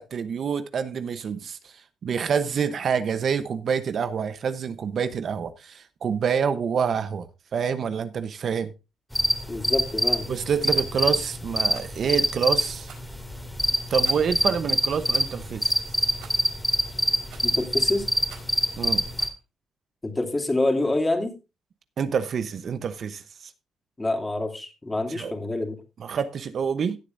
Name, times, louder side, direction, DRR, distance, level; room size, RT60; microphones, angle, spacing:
voice 1, 0.0-1.7 2.0-7.3 7.5-8.7 10.3-12.9 13.9-15.7 18.8-19.0 22.0-23.2 25.1-25.3 26.0-27.0, right 7 dB, 55° right, 0.9 m, -27 dB
sound 1, 9.1-19.3, equal, ahead, 2.5 m, -25 dB
voice 2, 9.5-10.3 17.4-18.1 20.0-21.3 24.0-25.8, left 2 dB, 15° left, 2.9 m, -26 dB
Rattle, 11.7-11.9 12.8-13.1 14.0-14.4 15.1-15.3 16.2-16.5 17.3-17.6 18.3-18.6 19.2-19.4, right 7 dB, 90° right, 4.6 m, -47 dB
17.0 x 8.3 x 2.6 m
cardioid pair, 90°, 0 cm